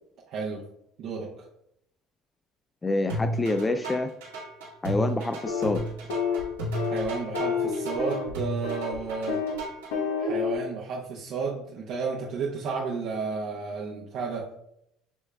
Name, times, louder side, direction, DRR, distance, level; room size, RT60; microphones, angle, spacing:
voice 1, 0.3-0.6 1.0-1.3 6.9-9.4 10.2-14.4, right 5 dB, 60° right, -3 dB, 0.8 m, -32 dB
voice 2, 2.8-4.1 4.8-5.8, left 2 dB, 20° left, 7 dB, 0.3 m, -27 dB
sound 1, 3.1-9.9, right 1 dB, 90° right, 1.5 m, -33 dB
sound 2, 5.5-5.8 6.1-6.4 6.7-7.0 7.3-8.3 8.6-9.0 9.3-9.6 9.9-10.5, left 5 dB, 80° left, 0.8 m, -29 dB
7.0 x 3.1 x 2.2 m, 0.76 s
hypercardioid pair, 75°, 0 cm